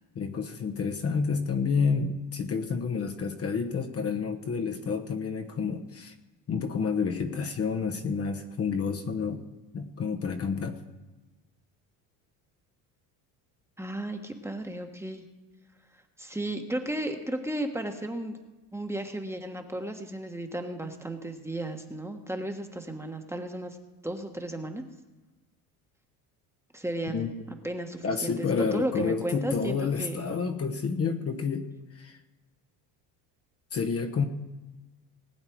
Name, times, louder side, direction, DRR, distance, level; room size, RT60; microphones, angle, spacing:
voice 1, 0.1-6.1 6.5-9.4 9.7-10.8 27.1-27.3 28.0-31.7 31.9-32.2 33.7-34.3, left 5 dB, 35° left, 4 dB, 1.1 m, -29 dB
voice 2, 13.8-15.2 16.2-18.4 18.7-23.8 24.0-24.8 26.7-27.3 27.6-30.2, right 1 dB, 5° right, 5 dB, 1.3 m, -34 dB
19.5 x 8.7 x 4.6 m, 1.2 s
supercardioid pair, 100°, 41 cm